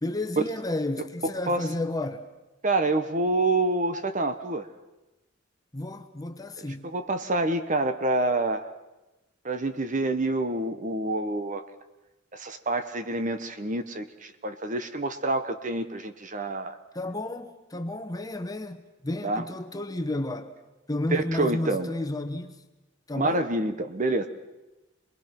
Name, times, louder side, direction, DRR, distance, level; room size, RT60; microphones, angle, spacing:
voice 1, 0.0-2.3 5.7-6.9 16.9-20.5 20.9-22.6 23.1-23.5, left 1 dB, 20° left, 1.1 m, -32 dB
voice 2, 1.2-1.6 2.6-4.7 6.8-8.7 9.4-11.6 12.3-16.8 19.2-19.4 21.1-21.9 23.1-24.3, right 2 dB, 40° right, 1.1 m, -27 dB
26.5 x 21.0 x 6.0 m
head